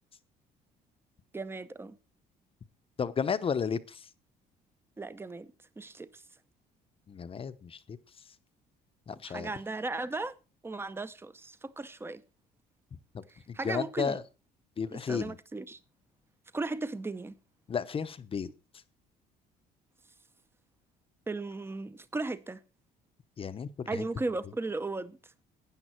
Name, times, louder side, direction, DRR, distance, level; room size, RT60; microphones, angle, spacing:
voice 1, 1.3-2.0 5.0-6.2 9.2-10.3 10.6-12.2 13.3-14.2 14.9-15.8 16.5-17.4 21.3-22.6 23.9-25.2, right 3 dB, 15° right, 0.8 m, -36 dB
voice 2, 3.0-4.1 7.1-8.0 9.1-9.5 13.1-14.2 14.8-15.4 17.7-18.5 23.4-24.0, left 6 dB, 35° left, 0.8 m, -33 dB
12.5 x 8.9 x 4.4 m
cardioid pair, 110°, 17 cm